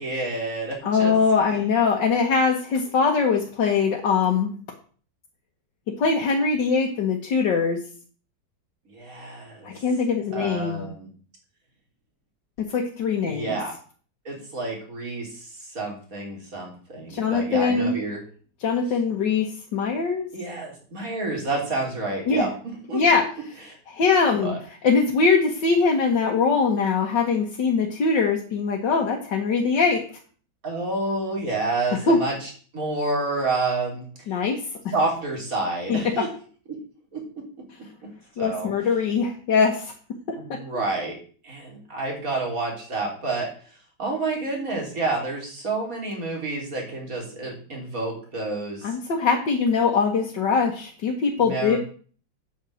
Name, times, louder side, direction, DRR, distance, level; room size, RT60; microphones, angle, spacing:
voice 1, 0.0-1.1 8.9-9.7 10.3-11.1 13.3-13.7 14.3-18.2 20.3-23.0 24.4-24.6 30.6-34.0 34.9-36.3 37.1-37.2 38.4-38.7 40.3-41.1 41.4-43.5 44.0-49.0 51.4-51.8, right 3 dB, 45° right, 0 dB, 3.9 m, -29 dB
voice 2, 0.8-4.5 6.0-7.8 9.6-10.9 12.6-13.6 17.1-17.9 18.6-20.3 22.3-22.5 22.9-23.2 23.9-24.5 24.8-30.0 32.1-32.2 34.3-34.6 35.9-36.0 38.4-39.9 40.3-40.6 48.8-51.8, left 5 dB, 65° left, 0 dB, 2.1 m, -22 dB
8.6 x 6.6 x 7.7 m, 0.43 s
omnidirectional pair, 2.1 m